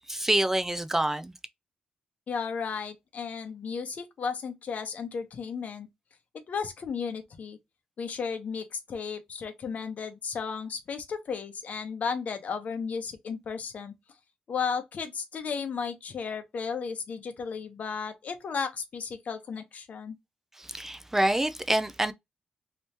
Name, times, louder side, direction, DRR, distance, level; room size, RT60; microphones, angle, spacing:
voice 1, 0.1-1.3 20.6-22.1, right 1 dB, 15° right, 0.3 m, -26 dB
voice 2, 2.3-5.9 6.5-7.6 8.0-13.9 14.5-20.1, left 6 dB, 60° left, 0.8 m, -34 dB
3.0 x 2.7 x 3.3 m
cardioid pair, 80°, 3 cm